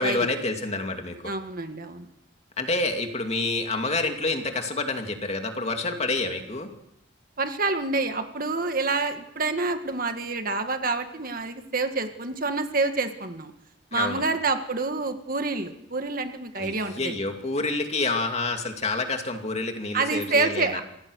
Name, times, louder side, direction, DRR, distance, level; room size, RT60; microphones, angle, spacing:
voice 1, 0.0-1.3 2.6-6.7 13.9-14.2 16.6-20.8, left 3 dB, 35° left, 4 dB, 2.5 m, -28 dB
voice 2, 1.2-2.1 7.4-13.5 13.9-17.1 19.9-20.8, right 3 dB, 45° right, 7 dB, 1.8 m, -27 dB
26.5 x 17.0 x 6.4 m, 0.81 s
head